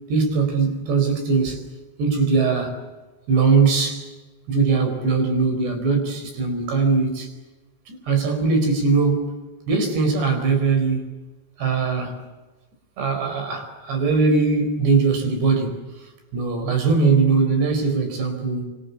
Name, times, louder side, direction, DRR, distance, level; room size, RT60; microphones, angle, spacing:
voice 1, 0.1-1.6 2.0-2.8 3.3-4.1 4.5-7.3 7.9-11.1 11.6-12.2 13.0-15.8 16.3-18.7, right 4 dB, 65° right, 6.6 m, -21 dB
26.5 x 24.5 x 8.5 m
omnidirectional pair, 5.3 m